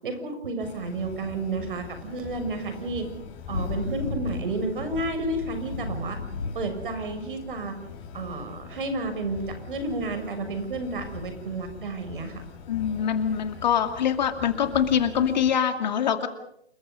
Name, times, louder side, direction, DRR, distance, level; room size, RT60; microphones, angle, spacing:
voice 1, 0.0-3.1 3.5-6.2 6.5-7.7 8.1-12.4, right 2 dB, 50° right, 7 dB, 6.5 m, -31 dB
sound 1, 0.6-15.6, left 6 dB, 20° left, 3.5 m, -43 dB
Thunder / Rain, 2.7-12.1, left 3 dB, 85° left, 2.4 m, -38 dB
voice 2, 12.7-16.3, left 8 dB, 40° left, 8 dB, 2.3 m, -24 dB
28.5 x 22.5 x 5.4 m, 0.73 s
figure-of-eight pair, 145°, 33 cm